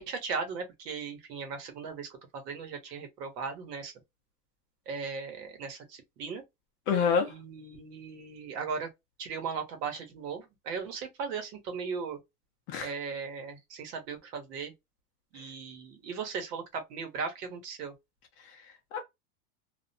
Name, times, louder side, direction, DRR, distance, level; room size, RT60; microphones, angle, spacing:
voice 1, 0.0-3.9 4.9-6.4 7.3-8.9 9.2-12.2 12.8-14.7 15.3-17.9, right 5 dB, 90° right, 1.2 m, -37 dB
voice 2, 6.9-7.3 12.7-12.9 15.3-15.5 18.4-19.0, left 6 dB, 30° left, 0.3 m, -29 dB
2.4 x 2.1 x 2.6 m
supercardioid pair, 145°, 47 cm